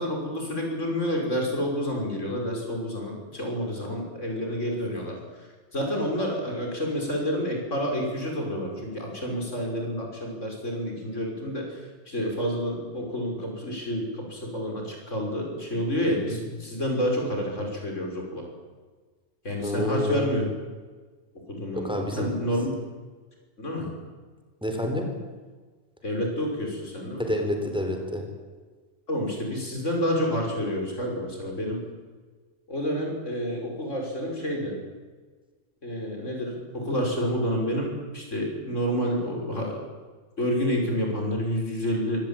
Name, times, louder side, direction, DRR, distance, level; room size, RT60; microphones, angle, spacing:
voice 1, 0.0-5.2 5.7-11.7 12.1-18.4 19.4-20.4 21.5-22.7 23.6-23.9 26.0-27.3 29.1-31.8 32.7-34.7 35.8-39.8 40.4-42.2, equal, 85° left, 1 dB, 6.1 m, -29 dB
voice 2, 19.6-20.4 21.8-22.7 24.6-25.1 27.2-28.2, left 1 dB, 5° right, 3 dB, 4.1 m, -29 dB
24.0 x 18.0 x 9.0 m, 1.4 s
omnidirectional pair, 1.2 m